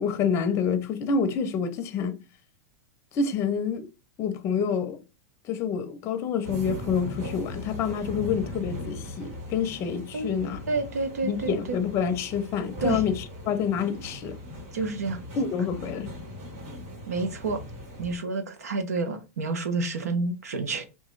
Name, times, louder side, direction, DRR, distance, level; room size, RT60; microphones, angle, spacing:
voice 1, 0.0-2.2 3.1-3.9 4.2-5.0 5.5-10.6 11.2-14.4 15.4-16.1, left 6 dB, 35° left, 0.6 m, -27 dB
sound 1, 6.4-18.2, left 1 dB, 50° right, 2.1 m, -39 dB
voice 2, 10.7-11.8 12.8-13.0 14.7-15.2 17.1-17.6 18.0-20.9, right 3 dB, 85° right, 0.9 m, -29 dB
3.0 x 2.5 x 3.8 m
hypercardioid pair, 125°, 8 cm